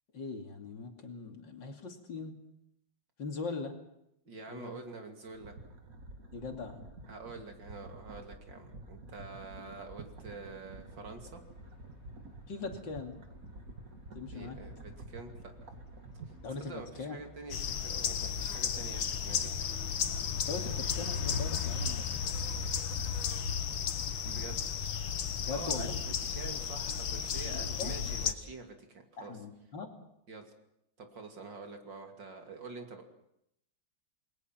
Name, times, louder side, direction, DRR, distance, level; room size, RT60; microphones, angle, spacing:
voice 1, 0.1-2.3 3.2-3.7 4.5-4.8 6.3-6.8 12.5-13.2 14.2-14.6 16.4-17.2 20.5-22.3 25.4-26.0 27.5-28.0 29.2-29.9, left 4 dB, 70° left, 4 dB, 3.3 m, -40 dB
voice 2, 4.3-5.6 7.1-11.4 14.3-15.5 16.6-19.5 24.3-24.8 25.5-29.3 30.3-30.5 31.0-33.0, right 3 dB, 65° right, 4 dB, 3.3 m, -46 dB
sound 1, 5.2-16.8, right 2 dB, 45° right, 2.2 m, -49 dB
Bus, 9.6-26.6, left 1 dB, 35° left, 2.1 m, -49 dB
sound 2, 17.5-28.3, left 7 dB, 85° left, 2.0 m, -34 dB
28.5 x 21.0 x 5.9 m, 0.79 s
omnidirectional pair, 2.1 m